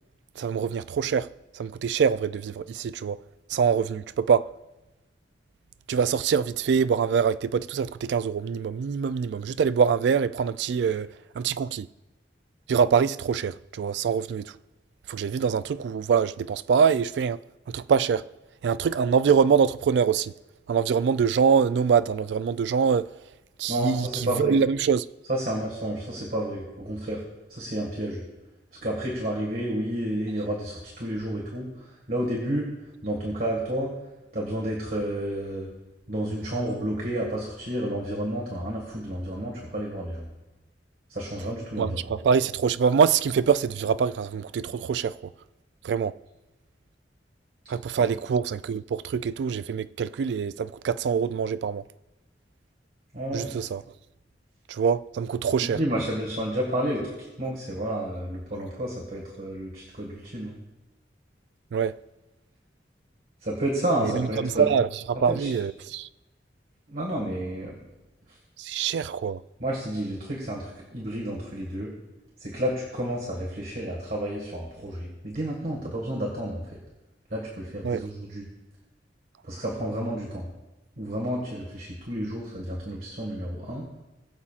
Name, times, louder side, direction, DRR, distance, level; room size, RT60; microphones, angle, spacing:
voice 1, 0.4-1.3 1.5-3.2 3.5-4.5 5.9-11.9 12.7-14.5 15.1-17.4 17.7-18.2 18.6-20.3 20.7-23.1 23.6-25.1 41.8-45.2 45.8-46.1 47.7-51.8 53.3-53.8 54.7-55.8 61.7-62.0 64.0-66.1 68.6-69.4 77.8-78.0, right 6 dB, 75° right, 0.3 m, -24 dB
voice 2, 23.7-24.6 25.3-27.2 27.5-28.2 28.8-32.7 33.0-33.9 34.3-35.7 36.1-40.3 41.1-42.0 48.0-48.1 53.1-53.6 55.6-57.0 57.4-60.6 63.4-64.7 65.2-65.5 66.9-67.8 68.3-68.4 69.6-71.9 72.4-76.8 77.3-78.5 79.4-80.5 81.0-83.9, right 1 dB, 55° right, 1.8 m, -30 dB
21.0 x 7.2 x 2.4 m
head